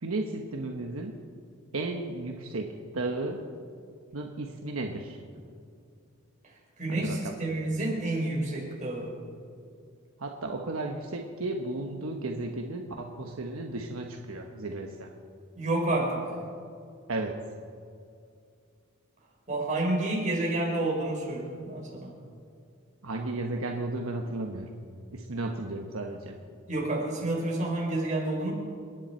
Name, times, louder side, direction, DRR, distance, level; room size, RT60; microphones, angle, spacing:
voice 1, 0.0-1.2 1.7-3.4 4.1-5.2 6.9-7.4 10.2-15.1 17.1-17.3 23.0-24.7 25.1-26.4, right 2 dB, 75° right, 2 dB, 1.1 m, -34 dB
voice 2, 6.8-9.1 15.6-16.2 19.5-22.1 26.7-28.5, right 2 dB, 35° right, -2 dB, 4.5 m, -29 dB
29.0 x 10.5 x 4.4 m, 2.3 s
head